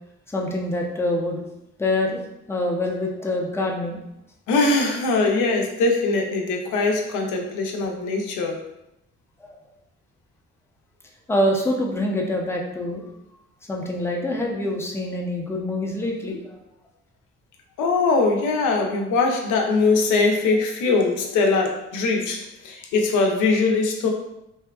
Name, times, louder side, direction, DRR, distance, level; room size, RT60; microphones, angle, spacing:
voice 1, 0.3-1.4 1.8-2.2 2.5-4.0 9.4-9.5 11.3-13.0 13.7-16.4, left 1 dB, 10° left, -1 dB, 0.4 m, -25 dB
voice 2, 4.5-8.6 17.8-24.1, left 3 dB, 80° left, 2 dB, 0.5 m, -21 dB
2.7 x 2.2 x 2.3 m, 0.86 s
cardioid pair, 90°, 30 cm